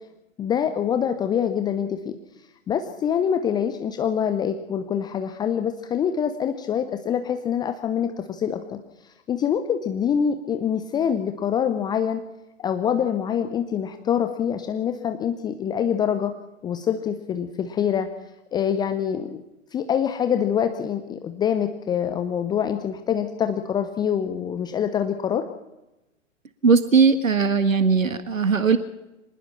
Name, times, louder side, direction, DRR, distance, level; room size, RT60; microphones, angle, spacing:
voice 1, 0.4-2.1 2.7-8.8 9.3-12.2 12.6-16.3 16.6-18.1 18.5-19.4 19.7-25.4, left 8 dB, 10° left, 8 dB, 0.8 m, -25 dB
voice 2, 26.6-28.8, right 5 dB, 75° right, 10 dB, 1.6 m, -19 dB
25.5 x 19.5 x 5.9 m, 0.96 s
figure-of-eight pair, 115°, 40 cm